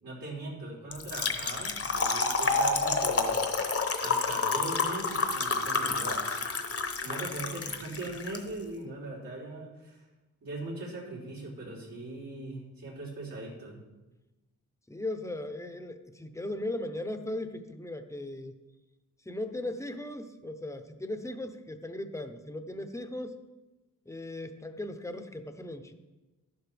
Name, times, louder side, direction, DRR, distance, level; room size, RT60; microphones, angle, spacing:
voice 1, 0.0-3.4 4.0-6.7 7.0-10.0 10.4-13.8, right 2 dB, 85° right, -7 dB, 3.9 m, -40 dB
Trickle dribble / Fill (with liquid), 0.9-8.4, left 4 dB, 40° left, 0.9 m, -29 dB
voice 2, 14.9-18.5 19.3-23.4 24.1-25.9, left 1 dB, 10° left, 8 dB, 0.7 m, -37 dB
12.0 x 11.0 x 3.4 m, 1.1 s
wide cardioid pair, 115°, 34 cm